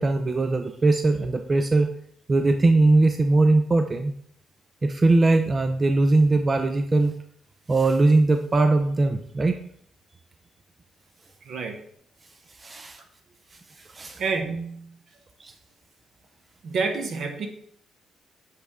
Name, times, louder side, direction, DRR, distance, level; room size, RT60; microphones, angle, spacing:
voice 1, 0.0-1.9 2.3-4.1 4.8-7.1 7.7-9.6 12.6-13.0 13.8-14.2 15.4-15.5, right 2 dB, 30° right, 6 dB, 0.4 m, -20 dB
voice 2, 11.4-11.8 14.2-15.0 16.6-17.5, right 4 dB, 65° right, 5 dB, 1.0 m, -28 dB
7.9 x 3.4 x 3.6 m, 0.66 s
cardioid pair, 90°, 0 cm